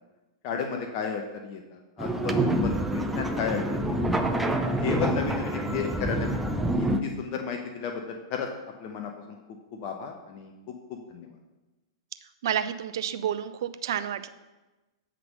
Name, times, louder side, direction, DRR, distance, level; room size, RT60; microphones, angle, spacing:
voice 1, 0.4-4.0 4.8-8.5 8.8-9.4 9.7-10.5 10.9-11.3, left 6 dB, 45° left, 2 dB, 0.8 m, -33 dB
sound 1, 2.0-7.0, right 1 dB, 5° right, 0.6 m, -27 dB
voice 2, 12.4-14.3, right 9 dB, 65° right, 11 dB, 0.5 m, -30 dB
7.7 x 3.7 x 6.6 m, 1.1 s
hypercardioid pair, 105°, 2 cm